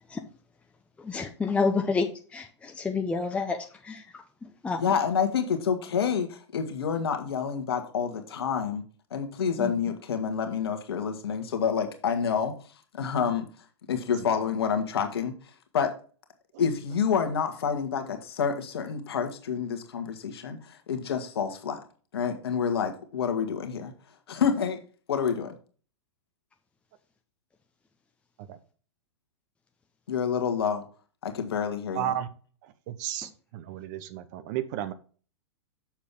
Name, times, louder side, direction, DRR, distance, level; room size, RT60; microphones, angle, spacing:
voice 1, 1.0-4.2 4.6-4.8 9.6-9.7, left 4 dB, 10° left, 0.7 m, -29 dB
voice 2, 4.8-8.8 9.1-12.5 12.9-13.5 13.9-15.3 15.7-15.9 16.6-21.8 22.1-23.9 24.3-24.8 25.1-25.6 30.1-30.8 31.2-32.2, left 7 dB, 55° left, 1.6 m, -28 dB
voice 3, 32.0-32.3 32.9-33.3 33.5-34.9, right 12 dB, 40° right, 0.9 m, -32 dB
7.3 x 6.6 x 3.8 m
figure-of-eight pair, 105°, 15 cm